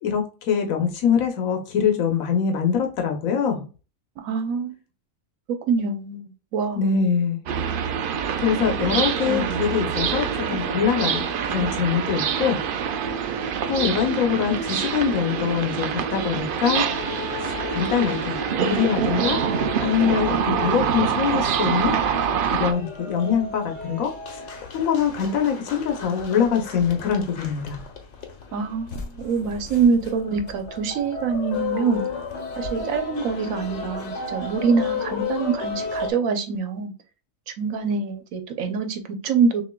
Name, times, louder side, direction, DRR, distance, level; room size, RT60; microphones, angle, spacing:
voice 1, 0.0-3.6 6.8-7.4 8.4-12.6 13.7-16.9 17.4-19.4 19.8-22.0 22.5-27.8, left 7 dB, 85° left, 1.3 m, -24 dB
voice 2, 4.2-4.8 5.5-7.0 9.3-9.6 28.5-32.0 32.5-36.9 37.6-39.6, right 5 dB, 85° right, 1.2 m, -25 dB
sound 1, 7.5-22.7, right 7 dB, 65° right, 0.5 m, -25 dB
sound 2, 16.7-36.1, left 5 dB, 60° left, 1.2 m, -34 dB
6.2 x 2.9 x 2.2 m
omnidirectional pair, 1.4 m